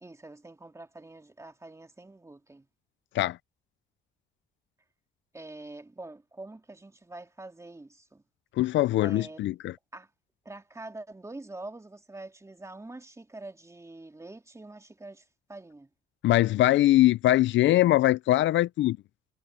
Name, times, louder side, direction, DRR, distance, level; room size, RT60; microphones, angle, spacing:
voice 1, 0.0-2.7 5.3-8.2 9.0-9.4 9.9-10.1 10.4-15.9, right 2 dB, 15° right, 2.5 m, -45 dB
voice 2, 8.6-9.7 16.2-19.0, left 15 dB, 70° left, 0.4 m, -22 dB
cardioid pair, 90°, 20 cm